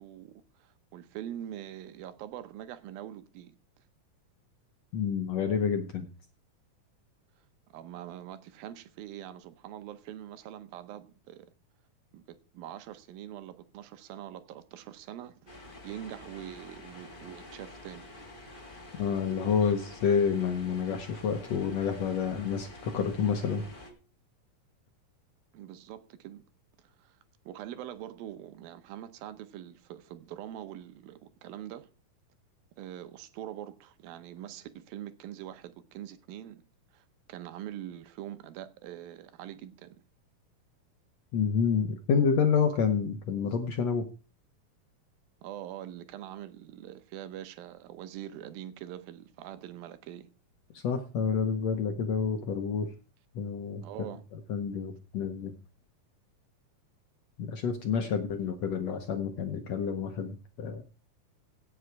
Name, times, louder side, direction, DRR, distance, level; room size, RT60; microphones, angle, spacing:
voice 1, 0.0-3.5 7.7-11.5 12.1-18.1 25.5-26.4 26.8-27.2 27.5-31.9 32.8-36.6 36.9-40.0 45.4-50.3 53.8-54.3 58.0-58.1, right 11 dB, 85° right, 2.7 m, -44 dB
voice 2, 4.9-6.1 19.0-23.6 41.3-44.0 50.7-52.9 53.4-53.8 54.5-55.5 57.4-60.8, left 6 dB, 70° left, 1.7 m, -29 dB
sound 1, 15.5-23.9, left 1 dB, 25° left, 1.1 m, -48 dB
16.5 x 6.2 x 4.7 m
omnidirectional pair, 4.1 m